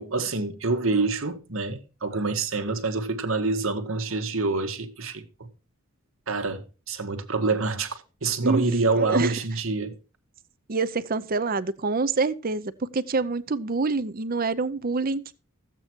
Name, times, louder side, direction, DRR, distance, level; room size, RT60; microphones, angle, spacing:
voice 1, 0.0-5.2 6.3-10.0, right 3 dB, 70° right, 1.4 m, -26 dB
voice 2, 9.0-9.3 10.7-15.3, right 3 dB, 45° right, 0.7 m, -26 dB
14.0 x 8.3 x 4.5 m
head